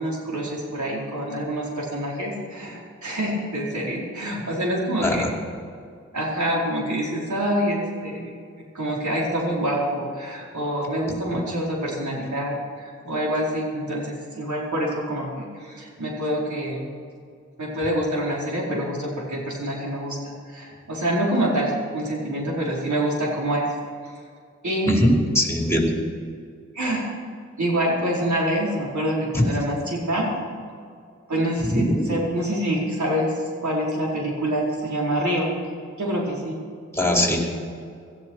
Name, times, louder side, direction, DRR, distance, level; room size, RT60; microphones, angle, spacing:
voice 1, 0.0-5.2 6.1-8.3 8.7-16.9 17.6-23.6 24.6-25.0 26.7-27.1 27.6-30.3 31.3-35.5 36.0-36.6, right 1 dB, 75° right, -3 dB, 4.7 m, -26 dB
voice 2, 11.1-11.4 24.9-25.9 29.3-29.5 31.7-32.1 36.9-37.5, left 1 dB, 10° left, -1 dB, 4.8 m, -21 dB
17.0 x 13.5 x 4.8 m, 2.3 s
cardioid pair, 40°, 29 cm